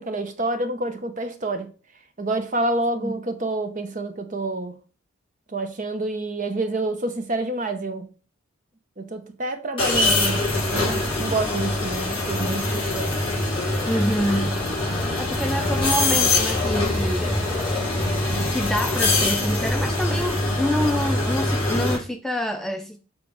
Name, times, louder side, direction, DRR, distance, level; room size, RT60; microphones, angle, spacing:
voice 1, 0.0-1.7 2.2-4.8 5.5-8.1 9.0-13.1, right 2 dB, 40° right, 0.9 m, -28 dB
sound 1, 9.8-22.0, left 2 dB, 25° left, 4.0 m, -23 dB
voice 2, 13.9-14.6 15.2-17.4 18.5-23.0, equal, ahead, 0.4 m, -27 dB
7.1 x 3.4 x 4.8 m
head